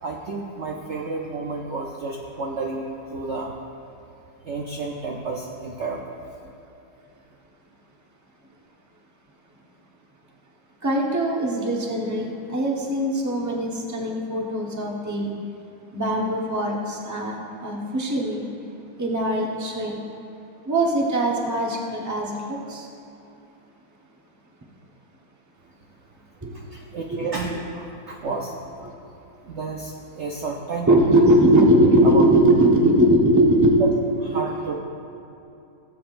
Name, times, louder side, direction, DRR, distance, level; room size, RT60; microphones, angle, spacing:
voice 1, 0.0-3.6 4.4-6.0 26.5-28.5 29.5-30.9 32.0-32.2 34.2-34.8, right 3 dB, 70° right, -1 dB, 0.6 m, -31 dB
voice 2, 10.8-15.3 15.9-17.4 17.6-18.5 19.0-20.0 20.7-22.9 26.4-26.6 27.1-27.3 28.8-28.9 30.9-33.8 34.3-34.4, right 1 dB, 15° right, -2 dB, 0.7 m, -20 dB
18.0 x 7.8 x 2.5 m, 2.8 s
omnidirectional pair, 2.1 m